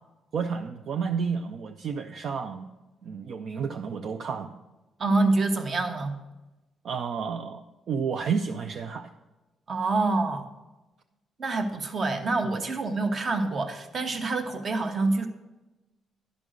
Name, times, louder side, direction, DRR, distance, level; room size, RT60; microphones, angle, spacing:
voice 1, 0.3-2.7 3.0-4.6 6.8-9.1 12.4-12.6, right 6 dB, 55° right, 5 dB, 0.5 m, -31 dB
voice 2, 5.0-6.2 9.7-10.5 11.4-15.3, right 3 dB, 35° right, 6 dB, 1.0 m, -26 dB
11.0 x 5.3 x 6.3 m, 1.1 s
cardioid pair, 140°, 0 cm